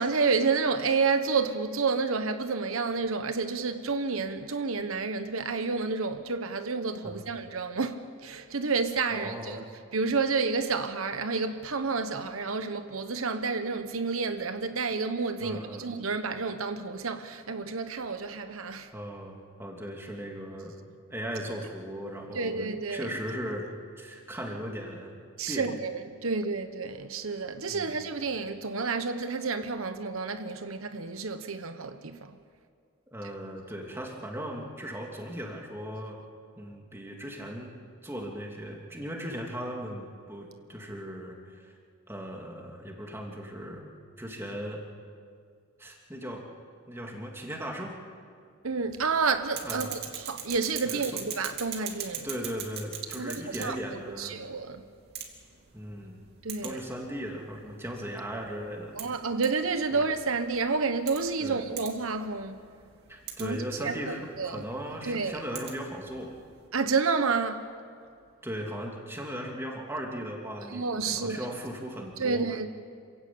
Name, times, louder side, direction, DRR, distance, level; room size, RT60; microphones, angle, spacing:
voice 1, 0.0-9.6 9.9-18.9 22.3-23.1 25.4-32.4 48.6-52.3 53.1-53.8 54.2-54.8 56.4-56.8 59.0-62.6 63.4-64.6 65.0-65.4 66.7-67.7 70.7-71.4 72.2-72.7, right 4 dB, 80° right, 1.1 m, -30 dB
voice 2, 9.1-9.6 15.4-15.9 18.9-20.8 21.1-22.6 22.9-23.7 24.0-25.1 25.5-25.7 27.7-28.0 33.1-36.2 36.6-37.7 38.0-41.7 42.1-43.8 44.2-44.8 45.8-46.4 46.9-48.0 49.6-49.9 50.8-51.2 52.2-54.4 55.7-56.2 56.6-59.0 59.9-60.0 61.4-61.6 63.1-66.3 68.4-72.4, equal, 10° right, 2.9 m, -37 dB
sound 1, 48.9-66.7, right 8 dB, 50° right, 2.6 m, -43 dB
27.5 x 16.0 x 8.7 m
head